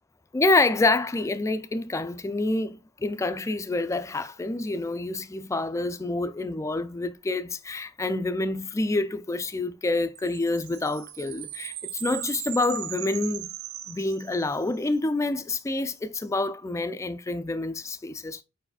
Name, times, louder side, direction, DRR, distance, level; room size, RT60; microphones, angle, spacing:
voice 1, 0.3-13.5 13.9-18.4, left 2 dB, 15° left, 0.3 m, -27 dB
sound 1, 10.2-14.8, right 12 dB, 85° right, 0.4 m, -38 dB
4.8 x 4.7 x 2.2 m
head